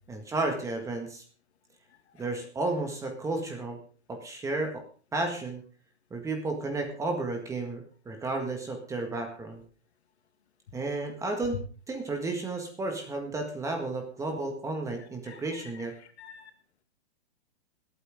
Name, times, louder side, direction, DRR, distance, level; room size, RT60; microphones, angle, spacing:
voice 1, 0.1-1.2 2.2-3.8 4.1-4.8 5.1-5.6 6.1-9.6 10.7-11.6 11.9-15.9, right 2 dB, 10° right, 4 dB, 1.7 m, -32 dB
voice 2, 15.3-16.5, left 6 dB, 70° left, 8 dB, 2.0 m, -50 dB
20.0 x 9.1 x 3.6 m, 0.41 s
hypercardioid pair, 150°, 34 cm